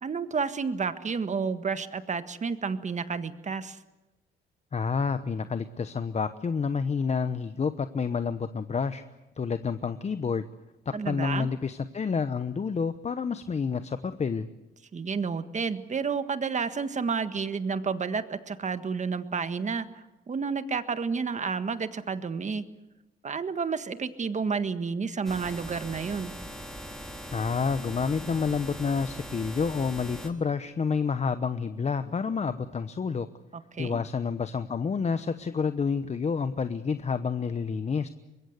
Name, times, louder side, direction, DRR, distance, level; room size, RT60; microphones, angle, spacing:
voice 1, 0.0-3.8 10.9-11.5 14.9-22.6 23.2-26.3 33.5-34.0, right 5 dB, 35° right, 10 dB, 1.6 m, -30 dB
voice 2, 4.7-9.0 9.4-10.5 10.9-14.5 27.3-33.3 33.8-38.1, left 5 dB, 35° left, 11 dB, 1.0 m, -29 dB
sound 1, 25.2-30.3, equal, ahead, 3.8 m, -41 dB
24.5 x 21.5 x 8.1 m, 1.1 s
cardioid pair, 90°, 20 cm